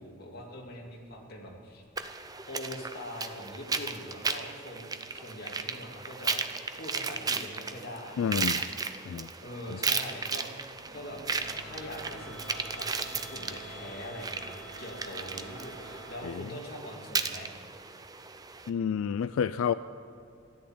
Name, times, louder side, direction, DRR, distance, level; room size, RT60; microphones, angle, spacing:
voice 1, 0.0-1.8 2.5-8.6 9.4-11.2 11.6-17.5, left 1 dB, 45° left, -1 dB, 2.5 m, -43 dB
sound 1, 2.0-18.7, right 4 dB, 20° right, 0.5 m, -35 dB
voice 2, 8.2-8.6 9.1-9.3 9.7-9.8 16.2-16.5 18.7-19.7, left 7 dB, 85° left, 13 dB, 0.3 m, -29 dB
sound 2, 10.6-16.3, right 1 dB, 5° left, 3.3 m, -46 dB
13.5 x 11.0 x 7.8 m, 2.6 s
head